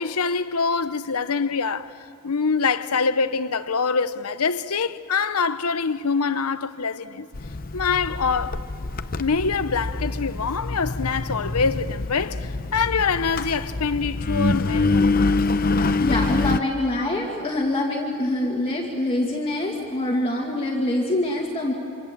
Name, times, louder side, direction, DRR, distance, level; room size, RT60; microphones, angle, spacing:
voice 1, 0.0-2.0 2.2-7.3 7.7-8.7 9.2-15.2, left 5 dB, 85° left, 0.9 m, -25 dB
Engine, 7.3-16.6, left 3 dB, 40° left, 0.7 m, -25 dB
voice 2, 15.9-21.7, left 1 dB, 25° left, 2.1 m, -25 dB
26.0 x 26.0 x 7.5 m
head